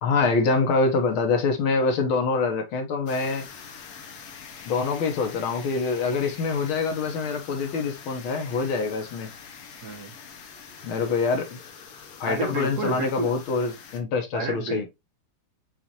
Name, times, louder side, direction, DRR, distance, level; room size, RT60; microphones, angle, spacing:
voice 1, 0.0-3.5 4.7-9.3 10.8-11.6 12.2-14.9, left 4 dB, 80° left, 1.9 m, -25 dB
sound 1, 3.0-14.0, left 6 dB, 60° left, 1.2 m, -44 dB
voice 2, 9.8-10.1 12.3-13.3 14.3-14.9, right 3 dB, 55° right, 1.5 m, -30 dB
6.9 x 2.6 x 2.9 m
omnidirectional pair, 2.3 m